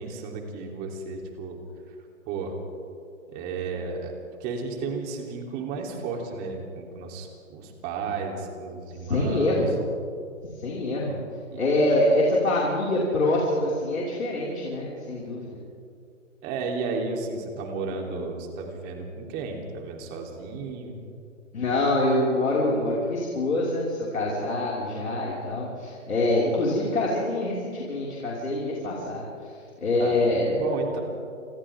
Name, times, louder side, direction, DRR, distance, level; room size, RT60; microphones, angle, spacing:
voice 1, 0.0-1.6 2.2-2.6 3.3-4.1 4.4-9.7 11.5-11.9 16.4-21.0 30.0-30.2 30.5-31.0, right 4 dB, 25° right, 1 dB, 3.6 m, -33 dB
voice 2, 9.0-9.8 10.6-11.2 11.6-15.6 21.5-30.6, left 1 dB, 85° left, -5 dB, 5.7 m, -25 dB
28.5 x 27.0 x 3.8 m, 2.4 s
hypercardioid pair, 150°, 39 cm